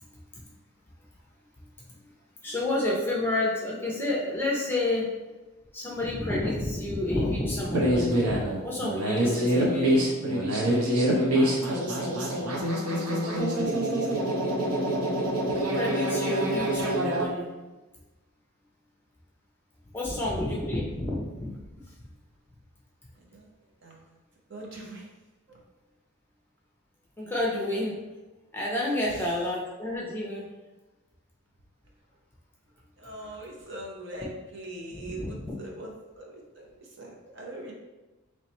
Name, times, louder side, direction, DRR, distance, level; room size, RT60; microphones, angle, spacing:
voice 1, 2.4-5.1 5.7-10.0 11.1-11.3 15.6-17.5 19.9-21.5 21.9-22.1 27.2-28.0 28.5-30.5 34.9-35.5, left 1 dB, 10° left, -4 dB, 0.6 m, -30 dB
sound 1, 7.7-17.3, right 1 dB, 80° right, 0.8 m, -26 dB
voice 2, 12.9-13.7 23.1-23.5 23.8-24.2 24.5-25.1 25.5-25.6 29.0-29.3 33.0-37.7, right 1 dB, 50° right, -1 dB, 0.7 m, -42 dB
3.2 x 3.1 x 4.1 m, 1.1 s
head